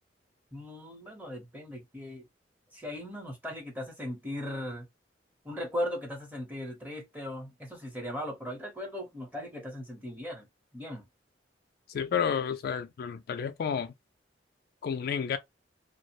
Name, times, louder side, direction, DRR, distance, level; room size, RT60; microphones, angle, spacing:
voice 1, 0.5-2.3 2.7-4.9 5.4-10.5 10.7-11.0, left 1 dB, 10° right, 0.8 m, -38 dB
voice 2, 11.9-13.9 14.8-15.4, left 7 dB, 55° left, 0.3 m, -31 dB
2.4 x 2.0 x 2.8 m
head